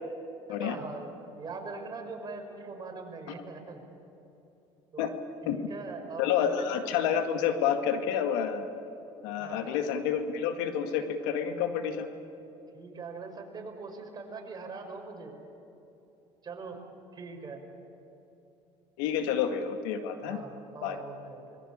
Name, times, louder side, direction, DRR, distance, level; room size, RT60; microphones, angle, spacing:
voice 1, 0.6-1.1 1.4-3.8 4.9-5.1 5.4-6.7 9.4-9.8 12.7-15.4 16.4-16.8 17.1-17.6 20.2-21.6, right 4 dB, 35° right, 2 dB, 5.8 m, -42 dB
voice 2, 6.2-8.7 9.2-12.1 19.0-20.4 20.8-21.0, left 8 dB, 90° left, 7 dB, 2.0 m, -29 dB
26.0 x 21.5 x 8.8 m, 3.0 s
supercardioid pair, 90°, 12 cm